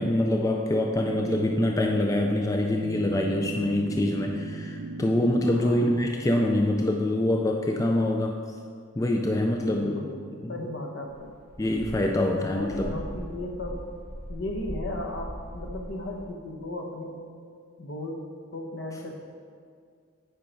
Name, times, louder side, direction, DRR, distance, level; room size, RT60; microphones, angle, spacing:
voice 1, 0.0-8.4 9.0-10.0 10.4-10.5 11.6-12.9, left 1 dB, 15° left, 2 dB, 0.4 m, -25 dB
sound 1, 1.0-6.2, right 3 dB, 75° right, 0.4 m, -38 dB
voice 2, 5.5-5.9 9.7-11.3 12.3-13.9 14.3-17.3 17.8-18.3 18.5-19.1, left 1 dB, 60° left, 2 dB, 1.0 m, -36 dB
sound 2, 11.1-16.3, equal, 40° left, 2.2 m, -40 dB
9.2 x 5.2 x 4.5 m, 2.1 s
head